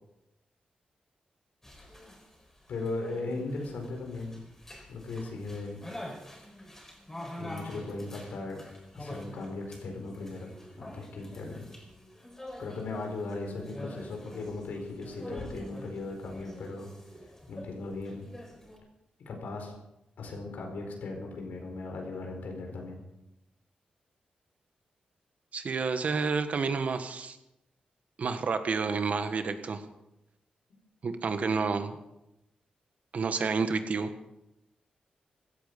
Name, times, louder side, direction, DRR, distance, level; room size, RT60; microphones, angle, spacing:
sound 1, 1.6-18.8, left 1 dB, 15° left, 4.7 m, -46 dB
voice 1, 2.7-4.4 4.9-5.8 7.4-8.6 8.9-11.7 12.6-16.9 17.5-18.2 19.3-19.7 20.2-23.0, left 3 dB, 90° left, 2 dB, 4.5 m, -37 dB
voice 2, 25.5-27.4 28.2-29.8 31.0-32.0 33.1-34.1, right 4 dB, 60° right, 8 dB, 1.6 m, -29 dB
16.5 x 13.5 x 5.3 m, 0.90 s
cardioid pair, 90°, 3 cm